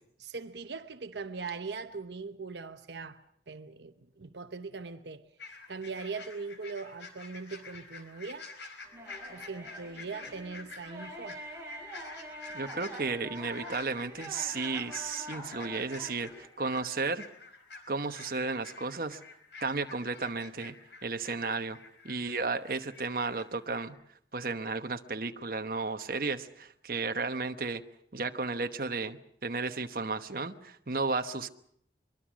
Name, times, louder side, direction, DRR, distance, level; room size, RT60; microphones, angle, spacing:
voice 1, 0.2-3.2 3.5-5.3 5.7-8.5 9.3-11.4, right 4 dB, 80° right, 0.9 m, -40 dB
sound 1, 5.4-23.5 23.7-23.9, left 4 dB, 85° left, 4.6 m, -48 dB
sound 2, 8.8-16.5, right 1 dB, 10° right, 7.8 m, -46 dB
voice 2, 12.5-17.2 17.9-19.2 19.6-20.7 21.0-21.8 22.0-23.9 24.3-27.8 28.1-31.5, right 4 dB, 50° right, 1.1 m, -33 dB
23.5 x 23.5 x 6.3 m
head